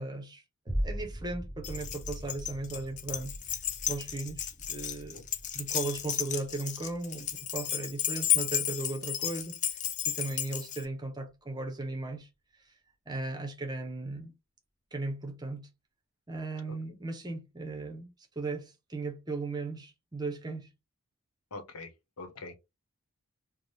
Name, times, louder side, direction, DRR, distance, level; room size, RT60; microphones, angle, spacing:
voice 1, 0.0-3.6 3.9-5.2 5.5-12.3 12.7-12.8 13.1-14.3 14.9-15.7 16.3-20.7, right 2 dB, 20° right, 0.6 m, -37 dB
sound 1, 0.7-9.2 9.7-9.8, equal, 10° left, 1.2 m, -41 dB
Keys jangling, 1.6-10.8, left 10 dB, 35° left, 0.4 m, -33 dB
voice 2, 21.5-21.9 22.2-22.6, left 3 dB, 90° left, 0.8 m, -43 dB
3.2 x 2.0 x 4.1 m
head